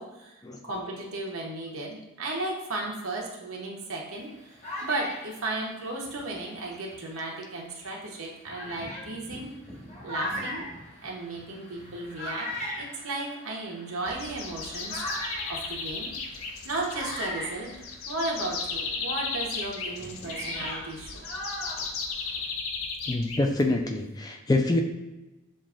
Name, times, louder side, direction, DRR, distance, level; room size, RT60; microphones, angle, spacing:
voice 1, 0.0-9.5 10.0-10.7 11.0-12.5 12.8-16.1 16.6-17.7 18.1-21.3, right 2 dB, 85° right, -1 dB, 0.9 m, -35 dB
sound 1, 4.1-7.2 7.8-7.9 8.4-18.5 18.8-22.5, equal, 35° left, 1.3 m, -39 dB
sound 2, 14.1-23.9, left 4 dB, 80° left, 0.5 m, -35 dB
voice 2, 23.1-24.8, left 2 dB, 20° left, 3 dB, 0.4 m, -25 dB
7.2 x 2.5 x 2.4 m, 1.1 s
head